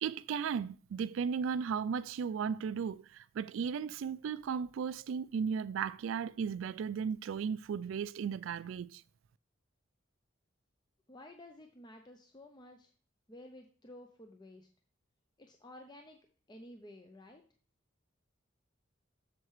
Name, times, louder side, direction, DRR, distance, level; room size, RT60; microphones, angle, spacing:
voice 1, 0.0-9.0, right 6 dB, 75° right, 0.3 m, -35 dB
voice 2, 11.1-12.9 13.3-14.7 15.4-16.2 16.5-17.4, left 1 dB, 20° left, 0.5 m, -53 dB
7.8 x 6.7 x 3.1 m
head